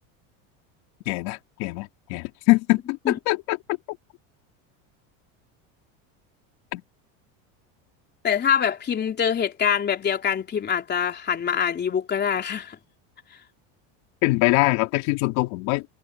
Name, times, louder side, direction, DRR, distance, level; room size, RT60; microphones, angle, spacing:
voice 1, 1.1-3.6 6.7-6.8 14.2-15.9, left 23 dB, 65° left, 2.9 m, -23 dB
voice 2, 8.2-12.8, left 8 dB, 25° left, 3.3 m, -24 dB
supercardioid pair, 140°, 40 cm